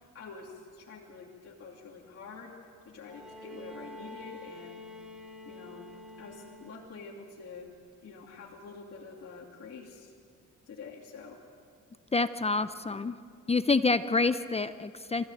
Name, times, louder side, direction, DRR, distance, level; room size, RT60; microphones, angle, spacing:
voice 1, 0.0-2.6 2.8-4.8 5.4-5.9 6.2-7.7 8.0-10.1 10.7-11.4 12.2-12.3, left 4 dB, 50° left, -4 dB, 2.9 m, -47 dB
Bowed string instrument, 3.0-7.1 8.3-8.4, left 1 dB, ahead, 2.9 m, -47 dB
voice 2, 12.1-13.1 13.5-15.3, left 3 dB, 20° left, 12 dB, 0.7 m, -27 dB
25.5 x 15.5 x 9.3 m, 2.3 s
cardioid pair, 90°, 30 cm